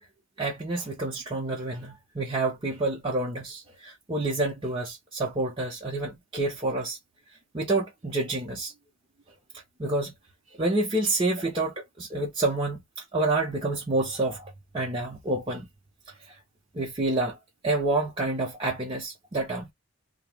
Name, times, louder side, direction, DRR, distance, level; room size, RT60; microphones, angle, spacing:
voice 1, 0.4-7.0 7.5-8.7 9.8-10.1 10.6-12.8 13.1-15.7 16.1-16.4 16.7-17.4 17.6-19.7, right 2 dB, 25° right, 0.6 m, -28 dB
2.7 x 2.0 x 3.2 m
head